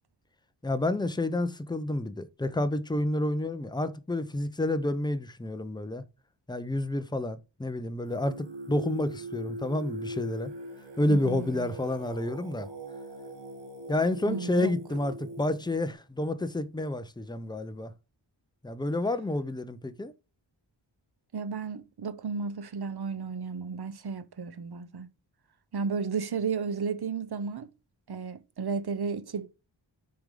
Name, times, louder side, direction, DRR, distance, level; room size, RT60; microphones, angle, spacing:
voice 1, 0.6-6.0 6.5-10.5 11.0-12.7 13.9-17.9 18.6-20.1, left 1 dB, 10° left, 0.7 m, -29 dB
Singing, 8.0-15.9, right 1 dB, 70° right, 1.8 m, -41 dB
voice 2, 11.1-11.7 14.3-14.7 21.3-25.1 25.7-27.7 28.1-29.5, right 5 dB, 55° right, 0.8 m, -33 dB
7.2 x 4.8 x 3.7 m
wide cardioid pair, 80°, 46 cm